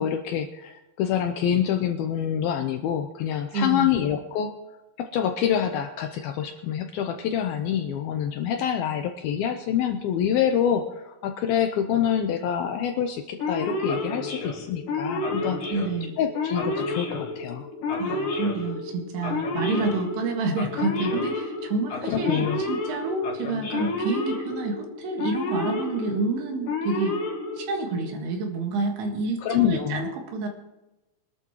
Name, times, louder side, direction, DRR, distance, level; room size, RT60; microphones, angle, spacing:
voice 1, 0.0-4.5 5.0-15.6 16.2-17.7 22.0-22.6 29.4-30.1, left 9 dB, 80° left, 6 dB, 2.2 m, -26 dB
voice 2, 3.5-3.9 15.7-16.2 18.0-27.2 27.6-30.5, right 3 dB, 70° right, 2 dB, 3.6 m, -29 dB
Male speech man speaking / Siren, 13.4-28.1, left 2 dB, 55° left, 3.0 m, -30 dB
24.0 x 12.0 x 3.1 m, 1.0 s
omnidirectional pair, 5.0 m